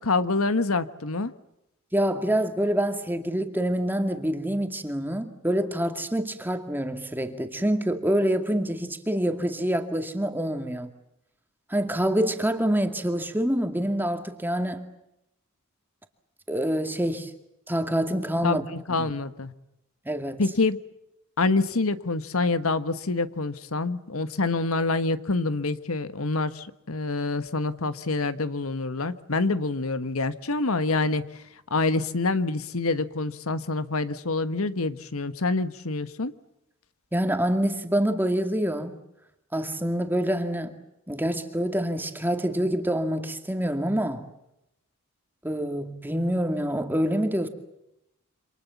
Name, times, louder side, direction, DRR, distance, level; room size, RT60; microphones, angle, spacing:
voice 1, 0.0-1.3 18.4-18.6 18.9-19.5 20.4-20.8 21.4-31.4 31.7-36.3, left 3 dB, 80° left, 1.4 m, -26 dB
voice 2, 1.9-10.9 11.7-14.9 16.5-17.3 17.7-18.7 19.0-19.1 20.1-20.4 37.1-39.0 39.5-40.8 41.1-44.3 45.4-47.5, equal, 10° right, 2.3 m, -26 dB
28.5 x 27.0 x 7.3 m
head